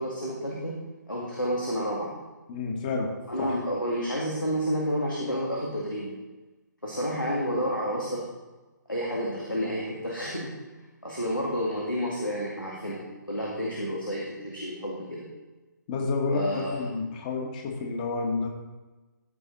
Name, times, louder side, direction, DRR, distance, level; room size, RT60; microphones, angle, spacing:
voice 1, 0.0-2.2 3.3-6.2 6.8-8.3 8.9-10.6 11.0-15.3 16.3-16.9, equal, 90° left, -4 dB, 2.1 m, -30 dB
voice 2, 2.5-3.1 3.5-3.6 15.9-18.5, left 3 dB, 25° left, 2 dB, 1.5 m, -29 dB
14.0 x 5.5 x 4.1 m, 1.2 s
figure-of-eight pair, 140°, 10 cm